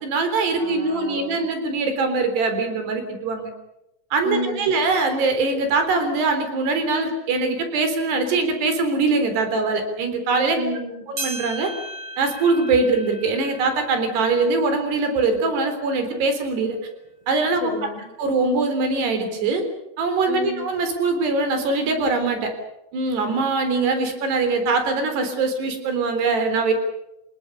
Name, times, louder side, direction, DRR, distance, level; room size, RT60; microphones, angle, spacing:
voice 1, 0.0-3.5 4.1-10.6 11.1-11.7 12.2-16.8 17.3-17.7 18.2-19.6 20.0-22.5 22.9-26.7, right 3 dB, 60° right, 8 dB, 5.7 m, -22 dB
voice 2, 0.6-1.4 4.2-4.8 10.5-11.1 17.6-18.1 20.3-20.6, left 1 dB, 65° left, 3 dB, 6.3 m, -31 dB
sound 1, 11.2-15.8 16.3-16.4 17.2-17.3 18.2-18.3, right 1 dB, 30° right, 6.8 m, -37 dB
29.0 x 19.0 x 6.7 m, 0.92 s
omnidirectional pair, 5.5 m